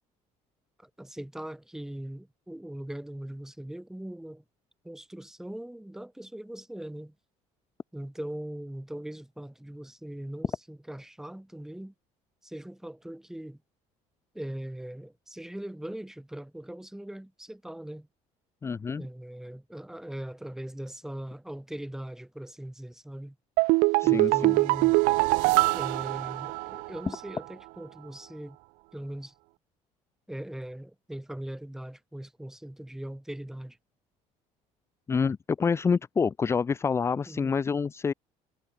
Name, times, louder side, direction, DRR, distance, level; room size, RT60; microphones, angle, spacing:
voice 1, 0.8-4.4 4.8-7.1 7.9-11.9 12.4-13.6 14.3-18.1 19.0-23.4 24.0-25.0 25.7-28.6 28.9-29.3 30.3-33.8 37.3-37.5, right 1 dB, 5° right, 3.5 m, -40 dB
voice 2, 18.6-19.1 24.0-24.6 35.1-38.1, left 5 dB, 20° left, 0.7 m, -27 dB
sound 1, 23.6-27.0 27.3-27.4, right 25 dB, 90° right, 1.4 m, -23 dB
cardioid pair, 145°, 14 cm